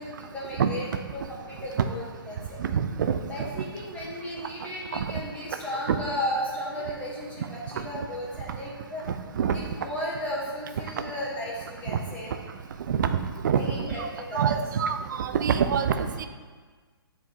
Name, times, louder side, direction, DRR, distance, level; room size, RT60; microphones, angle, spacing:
voice 1, 0.0-2.6 3.3-9.0 9.5-12.3 13.5-14.6, equal, 10° left, -6 dB, 1.3 m, -34 dB
voice 2, 2.6-3.2 5.9-6.0 9.4-9.6 12.9-13.1 13.4-13.6 14.3-16.3, right 7 dB, 50° right, 8 dB, 0.5 m, -25 dB
9.1 x 4.6 x 2.9 m, 1.4 s
figure-of-eight pair, 135°, 13 cm